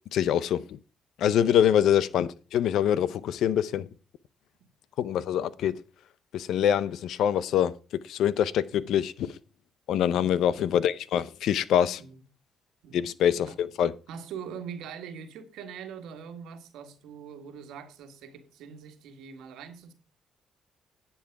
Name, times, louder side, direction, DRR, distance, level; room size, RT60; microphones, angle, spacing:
voice 1, 0.1-0.8 1.2-3.9 5.0-5.8 6.3-7.7 8.0-9.4 9.9-12.0 12.9-13.9, left 9 dB, 80° left, 0.6 m, -25 dB
voice 2, 14.1-19.9, right 7 dB, 85° right, 1.7 m, -42 dB
10.5 x 7.3 x 4.7 m
cardioid pair, 90°, 0 cm